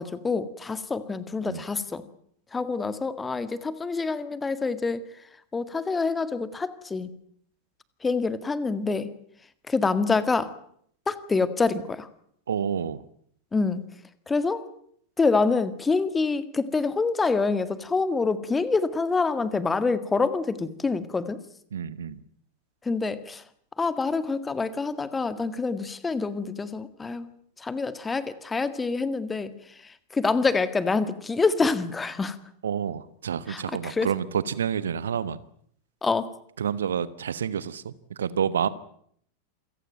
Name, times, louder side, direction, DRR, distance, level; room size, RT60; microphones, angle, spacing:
voice 1, 0.0-2.0 2.5-5.0 5.5-7.2 8.0-9.1 9.7-10.5 11.1-12.1 13.5-13.8 14.3-14.6 15.2-21.4 22.9-23.4 23.8-27.3 27.6-29.5 30.1-32.4 33.5-34.1 36.0-36.3, left 4 dB, 15° left, 14 dB, 1.9 m, -26 dB
voice 2, 12.5-13.0 21.7-22.2 32.6-35.4 36.6-38.7, right 8 dB, 65° right, 17 dB, 1.2 m, -29 dB
27.5 x 16.5 x 9.1 m, 0.66 s
figure-of-eight pair, 90°, 0 cm